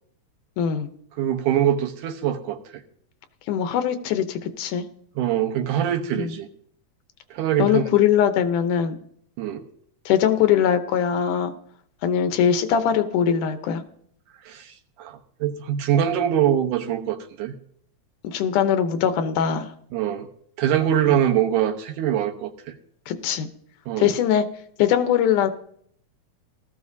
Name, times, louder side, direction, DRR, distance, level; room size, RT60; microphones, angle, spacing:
voice 1, 0.6-0.9 3.5-4.9 6.2-6.3 7.6-9.0 10.1-11.5 12.0-13.8 18.2-19.7 21.1-21.2 23.1-23.5 24.0-24.5 24.8-25.5, left 9 dB, 85° left, 9 dB, 2.4 m, -21 dB
voice 2, 1.2-2.8 5.2-6.5 7.3-7.8 9.4-9.6 14.4-17.5 19.9-20.3 20.6-22.7 23.9-24.1, right 10 dB, 85° right, 5 dB, 2.6 m, -23 dB
17.5 x 13.5 x 2.7 m, 0.65 s
omnidirectional pair, 3.5 m